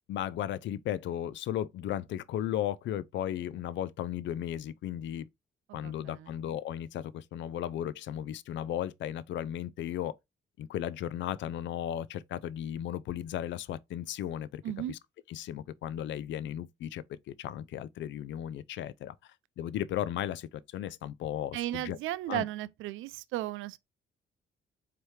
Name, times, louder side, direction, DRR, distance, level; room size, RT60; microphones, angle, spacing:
voice 1, 0.1-5.3 5.7-10.1 10.6-14.6 14.9-15.0 15.3-22.0 22.3-22.4, left 11 dB, 70° left, 0.4 m, -35 dB
voice 2, 5.7-6.3 14.6-14.9 21.5-23.8, right 14 dB, 85° right, 0.4 m, -35 dB
4.7 x 2.9 x 3.1 m
cardioid pair, 90°, 20 cm